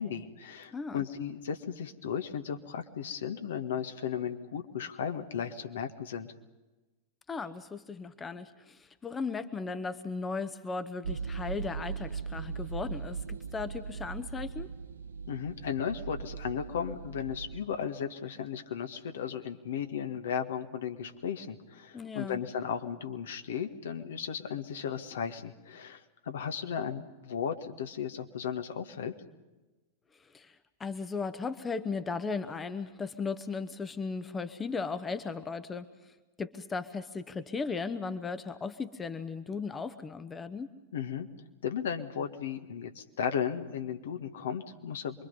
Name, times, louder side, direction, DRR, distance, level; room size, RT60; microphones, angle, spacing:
voice 1, 0.0-6.3 15.3-29.1 40.9-41.3 41.6-45.3, left 8 dB, 60° left, 6 dB, 1.6 m, -35 dB
voice 2, 0.7-1.0 7.3-14.7 21.9-22.4 30.2-35.9 36.4-40.7, left 4 dB, 15° left, 11 dB, 1.1 m, -36 dB
sound 1, 11.0-17.6, right 5 dB, 70° right, 0.7 m, -39 dB
27.5 x 23.0 x 5.5 m, 1.1 s
figure-of-eight pair, 90°, 0 cm